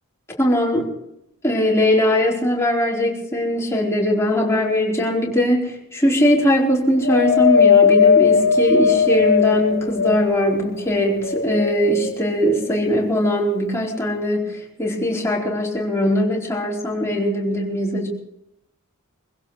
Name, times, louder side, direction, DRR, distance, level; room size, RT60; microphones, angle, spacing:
voice 1, 0.4-0.9 1.4-18.1, left 1 dB, 15° left, -3 dB, 4.5 m, -20 dB
Wind, 7.0-10.5 11.1-12.2 12.9-13.0, left 6 dB, 45° left, 0.9 m, -17 dB
25.5 x 16.5 x 3.4 m, 0.79 s
head